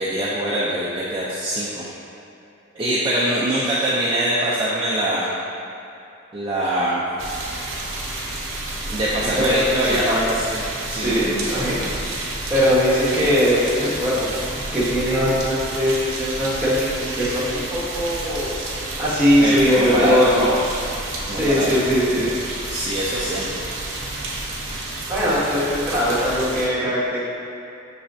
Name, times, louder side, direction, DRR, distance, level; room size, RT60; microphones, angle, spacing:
voice 1, 0.0-1.8 2.7-5.3 6.3-7.0 8.9-10.0 10.3-10.6 10.9-11.5 19.4-20.5 21.3-21.8 22.7-23.5, right 1 dB, 25° right, -8 dB, 0.4 m, -23 dB
sound 1, 7.2-26.7, right 2 dB, 85° right, 0.7 m, -30 dB
voice 2, 9.2-9.8 10.1-10.3 10.9-11.7 12.5-18.5 19.0-20.6 21.3-22.3 25.1-27.2, equal, 10° right, -10 dB, 1.1 m, -20 dB
5.9 x 3.1 x 2.6 m, 2.8 s
head